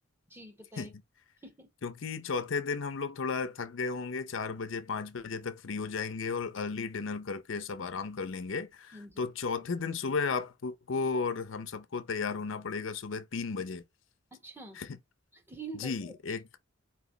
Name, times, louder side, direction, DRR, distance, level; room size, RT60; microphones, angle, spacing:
voice 1, 0.3-0.9 1.4-1.7 8.9-9.2 14.3-14.8 15.3-16.4, right 3 dB, 10° right, 1.2 m, -46 dB
voice 2, 1.8-13.8 14.8-15.0 15.8-16.6, left 4 dB, 65° left, 0.6 m, -34 dB
4.5 x 3.0 x 2.7 m
head